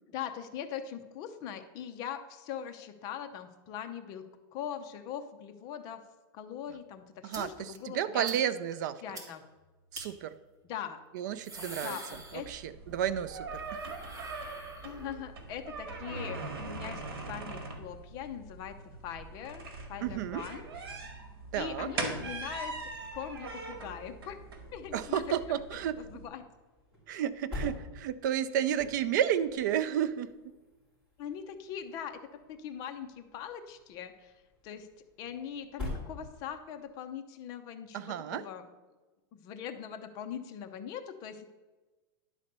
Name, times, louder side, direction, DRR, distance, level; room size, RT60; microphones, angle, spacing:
voice 1, 0.1-6.0 6.3-8.4 9.0-9.4 10.6-11.0 11.7-12.5 14.8-18.8 19.0-20.7 21.5-22.7 23.1-24.4 24.7-25.4 26.0-26.4 31.2-32.2 32.5-34.3 34.6-34.9 35.2-38.7 39.3-41.5, left 9 dB, 30° left, 7 dB, 0.6 m, -41 dB
voice 2, 7.2-9.0 9.9-10.3 11.1-12.0 12.3-13.8 14.1-14.2 20.0-20.4 21.5-21.9 24.9-26.0 27.1-30.3 37.9-38.4, right 10 dB, 50° right, 14 dB, 0.4 m, -32 dB
sound 1, 7.3-7.4 7.7-7.8 8.2-8.4 8.7-8.8 9.1-9.2 9.9-10.0 11.2-12.8 13.1-15.3, right 1 dB, 25° right, 2.0 m, -45 dB
sound 2, 12.4-26.3, right 3 dB, 70° right, 1.9 m, -42 dB
sound 3, 18.8-36.8, left 2 dB, 10° right, 3.3 m, -48 dB
11.0 x 4.1 x 6.7 m, 1.2 s
supercardioid pair, 165°, 13 cm